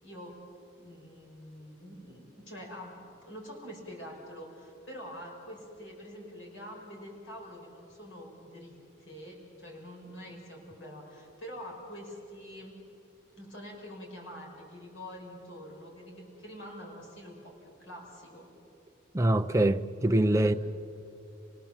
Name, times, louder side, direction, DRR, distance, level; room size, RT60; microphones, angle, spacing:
voice 1, 0.0-0.4 0.8-12.8 13.4-18.5 20.4-20.6, equal, 65° left, 5.4 m, -46 dB
voice 2, 19.1-20.5, right 1 dB, 15° right, 0.5 m, -24 dB
29.5 x 18.0 x 7.3 m
head